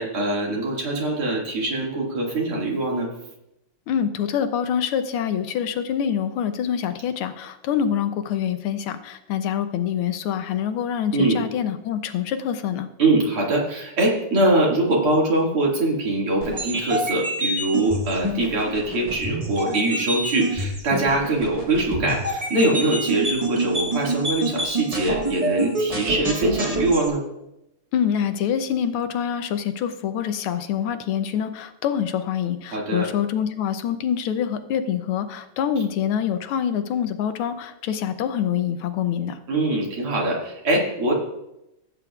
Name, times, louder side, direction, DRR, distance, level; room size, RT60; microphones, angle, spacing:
voice 1, 0.0-3.1 11.1-11.4 13.0-27.2 32.7-33.1 39.5-41.1, right 2 dB, 90° right, -2 dB, 3.1 m, -23 dB
voice 2, 3.9-12.9 27.9-39.4, left 8 dB, 85° left, 9 dB, 1.6 m, -25 dB
sound 1, 16.4-27.1, right 1 dB, 25° right, 0.8 m, -27 dB
15.5 x 8.5 x 2.4 m, 0.87 s
omnidirectional pair, 2.3 m